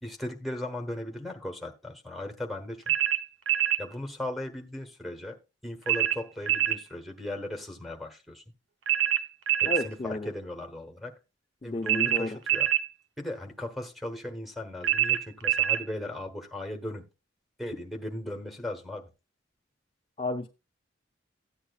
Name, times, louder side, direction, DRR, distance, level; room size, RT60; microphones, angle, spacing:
voice 1, 0.0-2.9 3.8-5.4 5.6-8.4 9.6-11.1 11.6-12.7 13.2-17.0 17.6-19.1, left 1 dB, ahead, 1.1 m, -37 dB
sound 1, 2.9-3.8 5.9-6.8 8.9-9.9 11.9-12.9 14.8-15.8, right 12 dB, 85° right, 0.6 m, -25 dB
voice 2, 9.6-10.3 11.6-12.4 20.2-20.5, left 2 dB, 30° left, 0.4 m, -32 dB
13.5 x 8.6 x 2.3 m
head